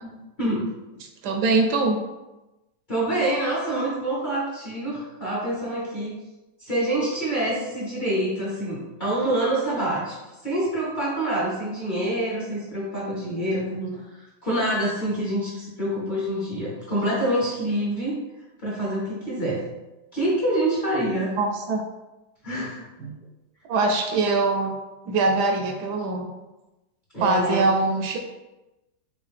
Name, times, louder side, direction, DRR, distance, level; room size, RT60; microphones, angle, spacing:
voice 1, 0.0-0.7 2.9-6.1 6.6-18.2 18.6-19.6 20.1-21.3 22.4-22.8 27.1-27.7, right 1 dB, 35° left, -6 dB, 0.8 m, -26 dB
voice 2, 1.2-2.0 21.4-21.8 23.0-23.1 23.7-24.7 25.1-26.3 27.2-28.2, right 3 dB, 75° right, 3 dB, 1.1 m, -22 dB
4.6 x 2.3 x 3.4 m, 1.0 s
omnidirectional pair, 1.8 m